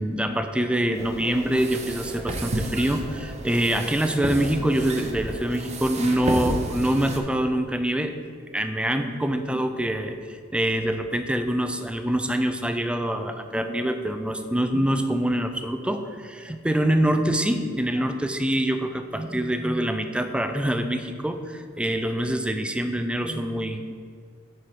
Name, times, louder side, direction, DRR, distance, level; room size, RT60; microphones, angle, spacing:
voice 1, 0.0-8.1 8.5-23.9, right 1 dB, 5° right, 8 dB, 0.4 m, -25 dB
sound 1, 0.9-7.2, right 1 dB, 35° right, 0.7 m, -32 dB
8.9 x 4.8 x 4.5 m, 2.1 s
head